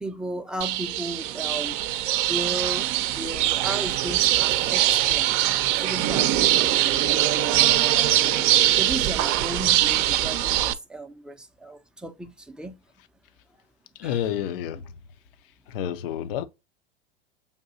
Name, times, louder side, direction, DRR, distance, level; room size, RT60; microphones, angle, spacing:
voice 1, 0.0-1.8 2.2-2.9 3.1-8.4 8.7-12.8 14.0-14.1, right 1 dB, 5° right, 0.5 m, -35 dB
sound 1, 0.6-10.7, right 13 dB, 55° right, 0.6 m, -22 dB
voice 2, 13.9-15.0 15.7-16.4, left 10 dB, 65° left, 0.6 m, -29 dB
6.8 x 2.6 x 2.6 m
hypercardioid pair, 95°, 31 cm